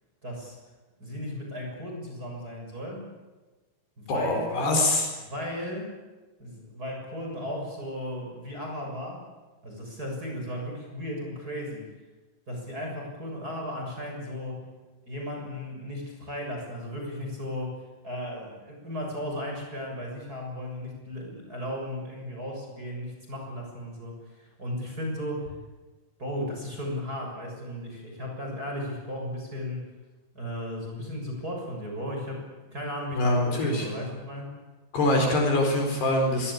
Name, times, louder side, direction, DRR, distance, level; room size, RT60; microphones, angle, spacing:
voice 1, 0.2-0.6 1.0-3.0 4.0-4.6 5.2-6.0 6.4-9.2 9.6-11.9 12.5-14.7 15.1-25.6 26.2-29.9 30.3-32.4 32.7-34.5, left 1 dB, 15° right, 0 dB, 7.0 m, -35 dB
voice 2, 4.1-5.1 33.2-33.9 34.9-36.5, left 1 dB, 55° left, 3 dB, 6.3 m, -24 dB
25.5 x 22.5 x 8.7 m, 1.2 s
omnidirectional pair, 6.0 m